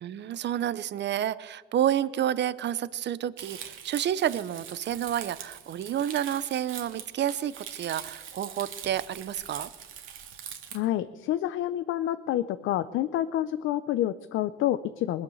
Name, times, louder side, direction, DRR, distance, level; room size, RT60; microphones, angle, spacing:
voice 1, 0.0-9.7, right 10 dB, 60° right, 17 dB, 0.7 m, -30 dB
Crumpling crinkling, 3.4-10.8, right 8 dB, 85° right, 2.2 m, -43 dB
voice 2, 10.7-15.2, left 12 dB, 85° left, 13 dB, 0.6 m, -28 dB
21.0 x 9.6 x 7.1 m, 1.3 s
cardioid pair, 90°, 20 cm